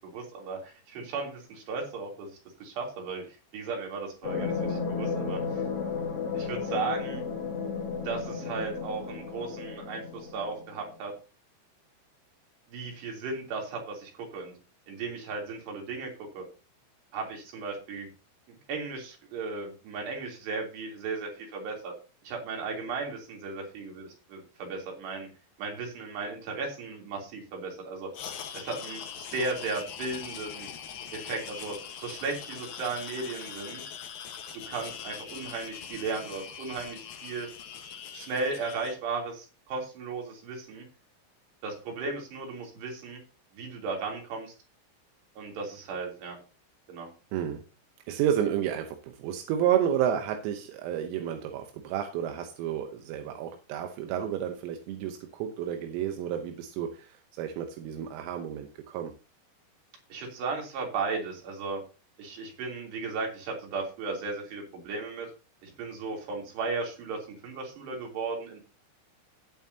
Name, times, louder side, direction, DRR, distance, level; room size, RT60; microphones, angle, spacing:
voice 1, 0.0-5.6 6.3-7.2 8.0-11.1 12.7-14.5 14.9-16.1 16.4-16.5 17.1-18.1 18.7-21.9 22.2-25.3 25.6-28.1 28.5-30.7 31.1-33.9 34.7-37.5 38.1-40.9 41.6-43.2 43.5-44.5 45.4-46.4 46.9-47.1 60.1-61.8 62.2-65.3 65.6-68.6, right 4 dB, 55° right, 1 dB, 5.2 m, -35 dB
sound 1, 4.2-10.9, left 5 dB, 45° left, 2.1 m, -33 dB
sound 2, 28.1-39.0, left 8 dB, 70° left, 2.3 m, -42 dB
voice 2, 48.1-59.1, right 10 dB, 85° right, 5 dB, 3.7 m, -31 dB
18.0 x 7.3 x 2.8 m, 0.33 s
omnidirectional pair, 5.9 m